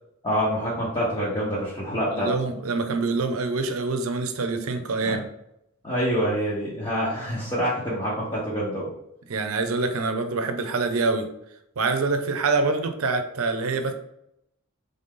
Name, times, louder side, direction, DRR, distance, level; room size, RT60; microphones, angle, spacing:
voice 1, 0.2-2.3 5.0-5.2 5.8-8.9, equal, 25° left, -7 dB, 1.1 m, -26 dB
voice 2, 2.1-5.2 9.3-11.2 11.8-13.9, right 3 dB, 75° right, 7 dB, 0.6 m, -25 dB
3.9 x 3.4 x 3.7 m, 0.79 s
head